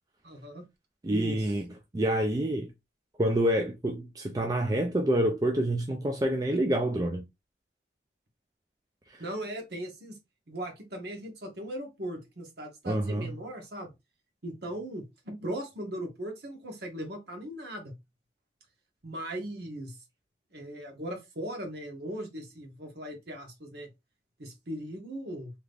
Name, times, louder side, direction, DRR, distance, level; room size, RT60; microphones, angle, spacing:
voice 1, 0.2-0.6 1.1-1.4 9.2-10.1 10.5-13.9 14.4-17.9 19.0-20.0 20.5-23.9 24.4-25.5, right 1 dB, 55° right, 1.1 m, -38 dB
voice 2, 1.0-1.7 1.9-2.7 3.2-7.3 9.1-9.2 12.9-13.3, right 1 dB, 20° right, 0.3 m, -27 dB
3.4 x 2.9 x 2.4 m
head